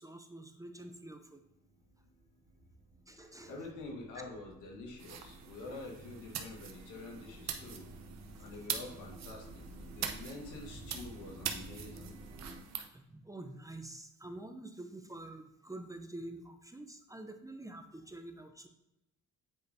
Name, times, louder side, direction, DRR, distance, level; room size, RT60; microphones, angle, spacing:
voice 1, 0.0-1.4 3.1-3.5 4.1-4.2 5.7-5.8 12.9-18.7, right 2 dB, 10° right, 6 dB, 0.6 m, -47 dB
sound 1, 1.1-12.6, right 2 dB, 40° right, 2.5 m, -52 dB
voice 2, 3.5-7.9 8.4-12.1, left 2 dB, 85° left, 0 dB, 1.7 m, -47 dB
sound 2, 5.0-12.9, right 8 dB, 60° right, 0.9 m, -43 dB
8.3 x 5.0 x 2.7 m, 0.89 s
cardioid pair, 90°, 30 cm